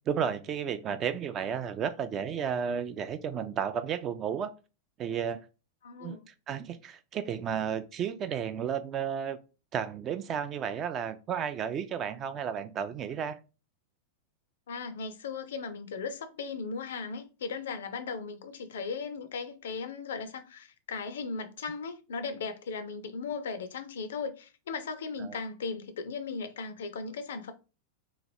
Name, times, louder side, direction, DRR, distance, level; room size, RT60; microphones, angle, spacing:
voice 1, 0.1-4.5 5.0-5.4 6.0-6.2 6.5-9.4 9.7-13.4 25.2-25.4, right 8 dB, 30° right, 0.3 m, -32 dB
voice 2, 5.8-6.3 14.7-27.5, left 5 dB, 60° left, 0.4 m, -37 dB
2.9 x 2.4 x 2.6 m
figure-of-eight pair, 90°, 0 cm